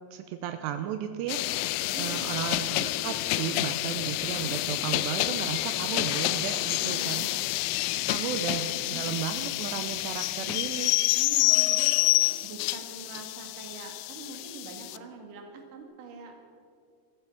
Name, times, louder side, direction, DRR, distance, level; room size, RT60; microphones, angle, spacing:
voice 1, 0.1-1.4 2.0-7.3 8.1-11.0, right 10 dB, 85° right, 8 dB, 2.5 m, -34 dB
sound 1, 1.3-15.0, left 18 dB, 85° left, 3.0 m, -28 dB
voice 2, 1.9-2.4 6.8-7.5 8.2-9.2 11.1-12.2 12.4-16.4, right 4 dB, 55° right, 4 dB, 2.8 m, -44 dB
15.0 x 14.5 x 5.9 m, 2.3 s
omnidirectional pair, 5.5 m